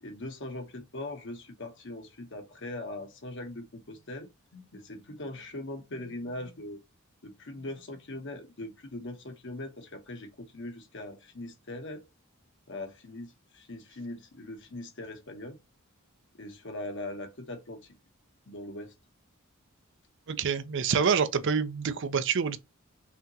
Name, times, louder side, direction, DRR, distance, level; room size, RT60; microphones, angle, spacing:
voice 1, 0.0-6.8 7.2-12.1 12.7-15.6 16.4-17.8 18.5-18.9, left 2 dB, 55° left, 1.2 m, -41 dB
voice 2, 20.3-22.6, right 6 dB, 55° right, 0.5 m, -27 dB
5.5 x 2.9 x 2.9 m
head